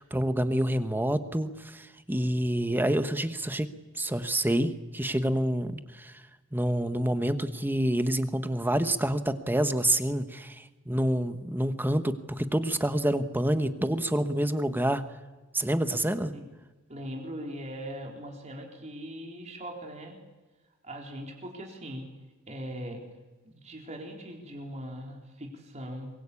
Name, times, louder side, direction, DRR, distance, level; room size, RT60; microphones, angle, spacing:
voice 1, 0.0-3.7 3.9-6.2 6.5-15.0 15.5-16.3, right 1 dB, 10° right, 10 dB, 1.2 m, -27 dB
voice 2, 16.9-20.2 20.8-22.1 22.5-23.0 23.4-26.1, equal, 35° right, 1 dB, 3.9 m, -40 dB
24.0 x 22.0 x 8.5 m, 1.2 s
head